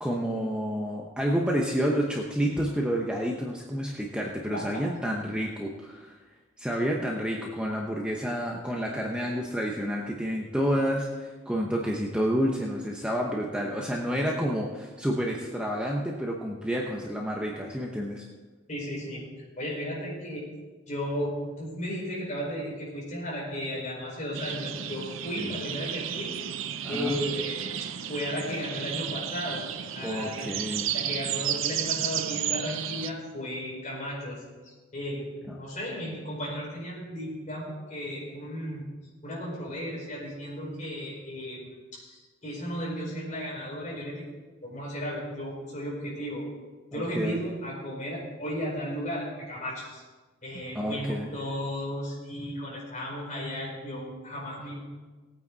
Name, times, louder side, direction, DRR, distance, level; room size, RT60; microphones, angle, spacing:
voice 1, 0.0-6.1 6.6-18.2 25.4-25.5 26.8-27.2 30.0-30.9 35.5-35.6 46.9-47.4 50.7-51.3, equal, 5° right, -1 dB, 0.9 m, -29 dB
voice 2, 4.5-5.0 18.7-19.3 19.6-20.5 20.9-26.4 26.9-29.7 29.9-38.8 39.2-41.6 41.9-44.2 44.6-46.5 46.9-50.0 50.4-54.8, equal, 35° left, -4 dB, 5.0 m, -35 dB
sound 1, 24.3-33.1, right 9 dB, 75° right, 0.6 m, -33 dB
18.5 x 9.0 x 4.0 m, 1.3 s
head